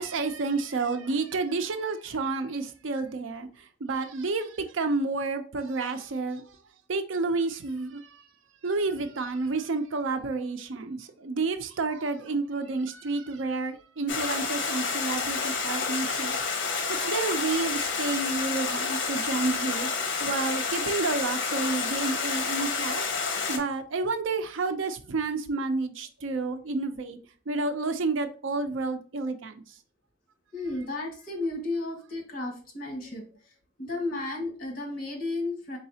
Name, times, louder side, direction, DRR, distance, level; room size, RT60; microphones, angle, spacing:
voice 1, 0.0-6.6 6.9-8.3 8.6-16.3 16.7-23.0 23.5-27.2 27.5-29.8, right 3 dB, 85° right, 0.5 m, -30 dB
Stream, 14.1-23.6, left 5 dB, 65° left, 0.8 m, -29 dB
voice 2, 30.5-35.8, left 2 dB, 50° left, 1.5 m, -33 dB
4.0 x 3.9 x 2.7 m
head